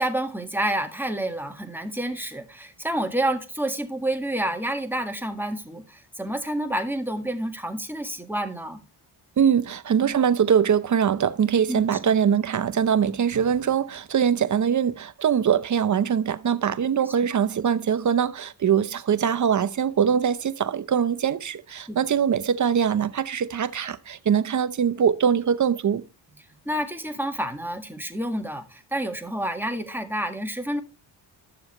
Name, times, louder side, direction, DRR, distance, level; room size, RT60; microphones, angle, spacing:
voice 1, 0.0-8.8 11.7-12.1 17.0-17.1 21.9-22.1 26.7-30.8, right 1 dB, 5° right, 1.7 m, -29 dB
voice 2, 9.4-26.0, right 8 dB, 40° right, 0.7 m, -22 dB
12.0 x 6.9 x 3.2 m
cardioid pair, 90°, 45 cm